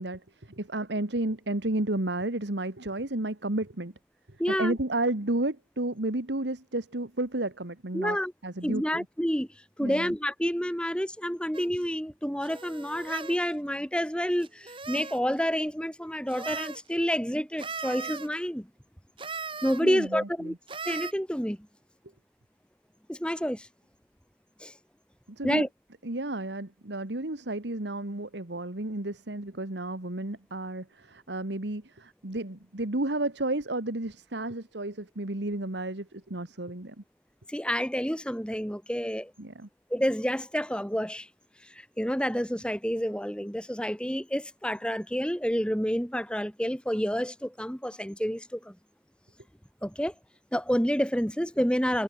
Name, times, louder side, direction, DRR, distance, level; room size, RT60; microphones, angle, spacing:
voice 1, 0.0-3.9 4.5-8.2 8.4-9.1 9.8-10.1 19.8-20.5 25.4-25.7 26.0-37.0 39.4-39.7, right 2 dB, 75° right, 1.9 m, -32 dB
voice 2, 4.4-4.8 7.9-8.3 8.6-9.5 9.8-18.7 19.6-20.5 20.8-21.7 23.1-23.7 24.6-24.7 25.4-25.7 37.5-39.3 39.9-41.3 41.6-48.8 49.8-50.1 50.5-52.0, equal, 5° left, 6.5 m, -29 dB
sound 1, 11.5-11.7 12.4-13.4 14.4-15.2 16.3-16.8 17.6-18.3 19.2-19.8 20.7-21.1, right 5 dB, 30° right, 3.5 m, -38 dB
head